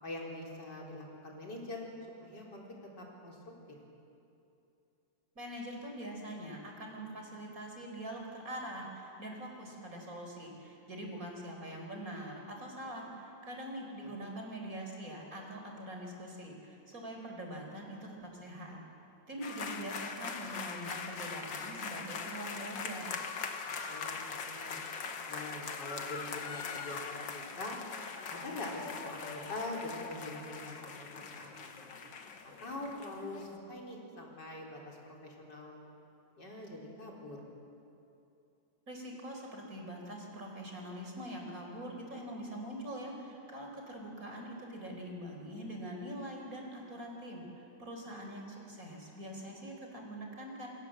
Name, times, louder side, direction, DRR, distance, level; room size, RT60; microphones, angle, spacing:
voice 1, 0.0-1.8 2.2-2.7 3.0-3.4 3.7-3.8 14.0-14.1 23.9-24.8 25.3-27.8 28.3-31.9 32.6-35.0 35.2-35.9 36.3-37.4, left 2 dB, 65° left, -2 dB, 5.0 m, -44 dB
voice 2, 5.3-18.8 19.3-23.1 38.9-50.7, right 1 dB, 45° right, 1 dB, 5.0 m, -43 dB
sound 1, 19.4-33.6, left 5 dB, 80° left, 2.2 m, -41 dB
27.5 x 25.5 x 7.6 m, 2.8 s
omnidirectional pair, 2.0 m